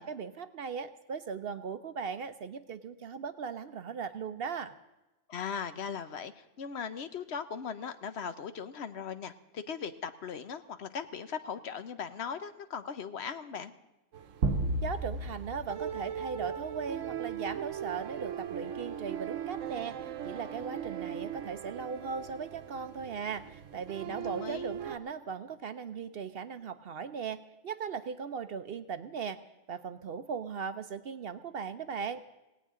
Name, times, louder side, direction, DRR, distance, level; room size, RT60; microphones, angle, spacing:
voice 1, 0.0-4.7 14.8-29.4 29.7-32.2, right 6 dB, 60° right, 12 dB, 0.8 m, -38 dB
voice 2, 5.3-13.7 24.0-24.7, left 6 dB, 60° left, 11 dB, 1.0 m, -39 dB
sound 1, 14.1-25.0, right 9 dB, 90° right, 1.2 m, -40 dB
sound 2, 14.4-17.0, right 2 dB, 75° right, 1.2 m, -33 dB
17.5 x 17.5 x 3.7 m, 1.0 s
omnidirectional pair, 1.3 m